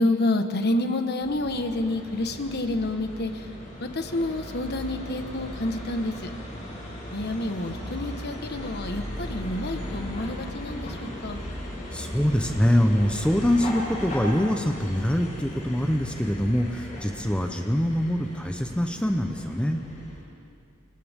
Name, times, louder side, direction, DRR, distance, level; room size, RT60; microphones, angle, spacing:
voice 1, 0.0-3.5 3.8-6.3 7.1-11.4 20.3-20.4, left 2 dB, 50° left, 6 dB, 1.4 m, -28 dB
sound 1, 1.2-20.2, left 1 dB, 35° left, 7.8 m, -37 dB
voice 2, 11.9-19.8, equal, 5° left, 4 dB, 0.8 m, -24 dB
28.5 x 28.5 x 3.7 m, 2.3 s
head